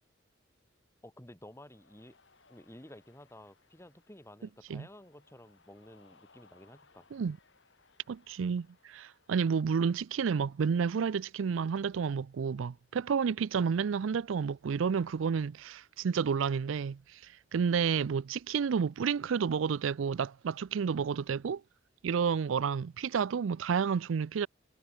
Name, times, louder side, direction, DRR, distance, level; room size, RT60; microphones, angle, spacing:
voice 1, 1.0-2.2 2.5-7.1, left 1 dB, 15° left, 4.8 m, -53 dB
Cheering, 1.5-16.3, left 4 dB, 65° left, 4.1 m, -68 dB
voice 2, 8.1-21.6 22.0-24.5, right 6 dB, 90° right, 0.4 m, -30 dB
head